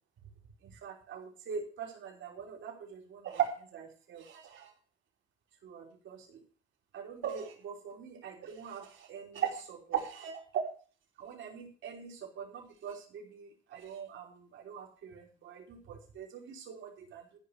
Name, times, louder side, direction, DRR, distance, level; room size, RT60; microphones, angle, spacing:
voice 1, 0.8-4.7 5.6-6.3 6.9-10.4 11.2-17.2, right 8 dB, 75° right, 0 dB, 3.4 m, -40 dB
13.0 x 5.5 x 8.1 m, 0.40 s
cardioid pair, 90°, 20 cm